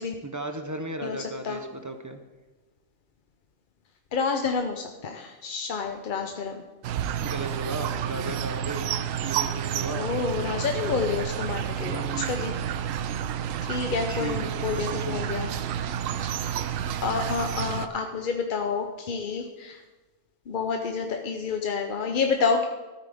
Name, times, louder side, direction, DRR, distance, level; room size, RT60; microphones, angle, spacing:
voice 1, 0.2-2.2 7.2-10.1 11.8-12.5 14.1-15.2, right 2 dB, 20° right, 6 dB, 0.6 m, -36 dB
voice 2, 1.0-1.6 4.1-6.6 9.9-12.5 13.7-15.5 16.2-16.5 17.0-19.8 20.5-22.7, left 5 dB, 50° left, 3 dB, 0.7 m, -29 dB
sound 1, 6.8-17.9, right 9 dB, 80° right, 1.0 m, -30 dB
13.5 x 9.2 x 3.4 m, 1.2 s
omnidirectional pair, 1.4 m